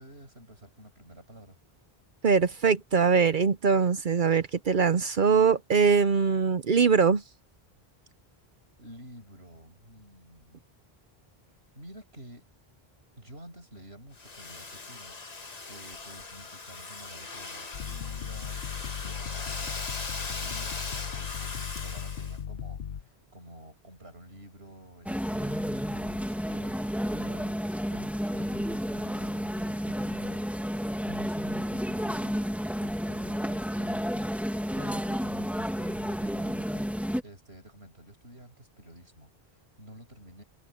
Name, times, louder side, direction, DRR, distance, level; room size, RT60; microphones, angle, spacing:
voice 1, 0.0-1.6 8.8-10.6 11.7-12.4 13.2-27.6 27.9-32.4 32.8-36.9 37.2-40.4, right 1 dB, 85° right, 7.7 m, -50 dB
voice 2, 2.2-7.2, right 5 dB, 55° right, 0.8 m, -22 dB
Domestic sounds home sounds, 14.1-22.4, left 4 dB, 40° left, 1.4 m, -39 dB
sound 1, 17.7-23.0, left 8 dB, 75° left, 1.0 m, -37 dB
sound 2, 25.1-37.2, equal, ahead, 1.8 m, -31 dB
omnidirectional pair, 1.0 m